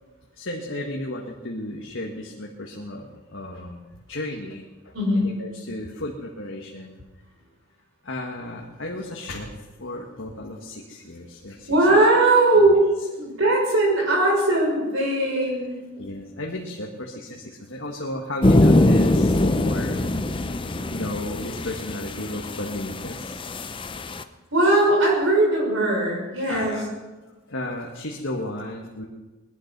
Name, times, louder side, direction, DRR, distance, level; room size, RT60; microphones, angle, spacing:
voice 1, 0.3-7.0 8.0-9.5 9.8-11.7 16.0-20.6 20.9-23.4 26.5-26.8 27.5-29.0, left 1 dB, 70° left, -1 dB, 1.7 m, -34 dB
voice 2, 4.9-5.3 11.7-12.8 13.2-15.7 24.5-26.8, right 2 dB, 70° right, -1 dB, 6.2 m, -19 dB
sound 1, 18.4-24.2, left 1 dB, 25° left, 0.7 m, -22 dB
20.0 x 11.5 x 6.1 m, 1.2 s
head